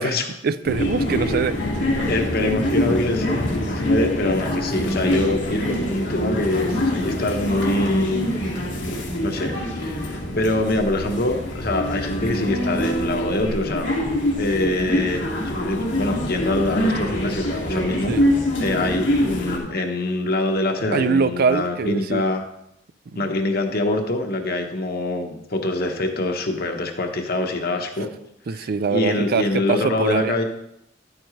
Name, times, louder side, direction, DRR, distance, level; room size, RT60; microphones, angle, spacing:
voice 1, 0.4-2.0 18.1-18.2 20.9-22.2 23.1-23.2 28.5-30.3, right 5 dB, 55° right, 14 dB, 0.4 m, -23 dB
sound 1, 0.6-19.6, left 1 dB, 85° left, 2.1 m, -24 dB
voice 2, 2.1-8.3 9.2-13.9 14.4-18.1 18.6-22.4 23.1-28.1 28.6-30.4, left 2 dB, 55° left, 4 dB, 1.2 m, -24 dB
10.5 x 8.7 x 3.2 m, 0.78 s
head